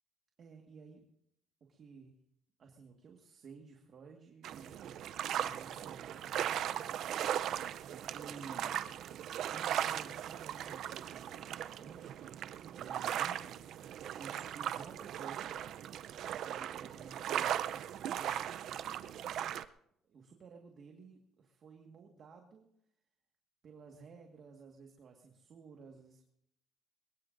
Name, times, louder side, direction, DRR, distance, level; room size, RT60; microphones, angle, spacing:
voice 1, 0.4-1.0 1.7-2.1 2.6-5.0 5.3-7.6 7.9-8.7 9.5-15.6 16.3-18.5 20.0-22.7 23.6-26.2, right 5 dB, 45° right, 2 dB, 1.6 m, -54 dB
sound 1, 4.4-19.6, right 10 dB, 65° right, 0.5 m, -38 dB
22.0 x 21.5 x 2.6 m, 0.75 s
cardioid pair, 120°, 0 cm